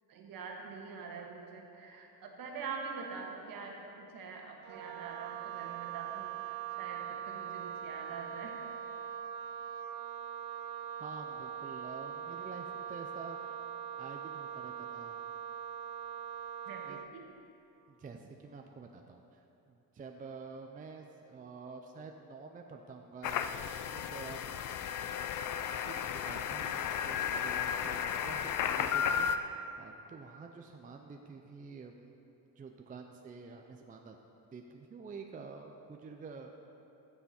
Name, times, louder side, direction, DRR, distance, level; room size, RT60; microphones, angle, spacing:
voice 1, 0.1-8.6 16.6-17.2, right 5 dB, 55° right, 1 dB, 1.7 m, -45 dB
Wind instrument woodwind instrument, 4.6-17.1, right 9 dB, 85° right, 0.6 m, -42 dB
voice 2, 11.0-13.6 14.0-15.2 16.8-17.0 17.9-24.9 25.8-32.2 32.6-36.5, right 4 dB, 20° right, 3 dB, 0.5 m, -49 dB
sound 1, 23.2-29.4, left 8 dB, 50° left, 0.5 m, -34 dB
14.5 x 7.1 x 4.3 m, 2.9 s
cardioid pair, 130°, 40 cm